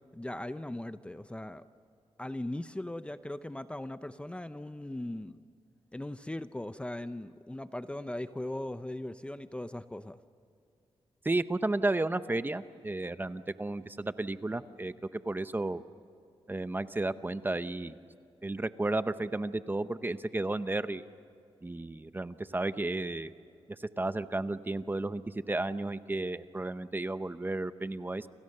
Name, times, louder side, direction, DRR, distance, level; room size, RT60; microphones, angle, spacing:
voice 1, 0.0-1.6 2.2-5.4 5.9-10.2, left 1 dB, 10° left, 11 dB, 0.7 m, -39 dB
voice 2, 11.2-15.8 16.5-18.0 18.4-21.0 21.6-23.3 23.8-28.3, right 2 dB, 20° right, 12 dB, 0.8 m, -33 dB
29.0 x 28.0 x 6.7 m, 2.5 s
wide cardioid pair, 100°, 10 cm